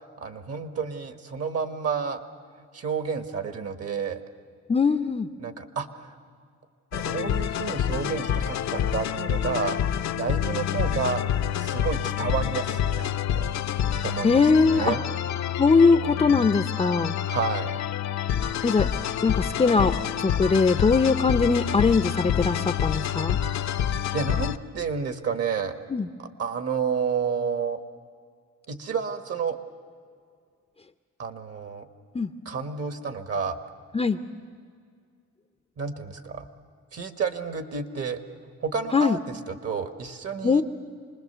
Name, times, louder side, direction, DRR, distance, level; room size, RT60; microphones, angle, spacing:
voice 1, 0.2-2.2 2.7-4.2 5.4-6.1 6.9-9.8 10.1-11.2 11.6-13.4 14.0-15.0 17.3-17.8 23.8-25.8 26.2-27.8 28.7-29.6 31.2-31.9 32.4-33.6 35.8-36.5 36.9-38.2 38.6-40.6, right 5 dB, 50° right, 7 dB, 1.6 m, -30 dB
voice 2, 4.7-5.3 14.2-15.0 15.6-17.2 18.6-18.9 19.2-23.4 25.9-26.1 32.1-32.3 33.9-34.2 38.9-39.2 40.4-40.6, left 4 dB, 20° left, 8 dB, 0.6 m, -21 dB
sound 1, 6.9-24.6, left 10 dB, 65° left, 0.7 m, -27 dB
26.5 x 20.0 x 6.9 m, 2.1 s
cardioid pair, 90°, 30 cm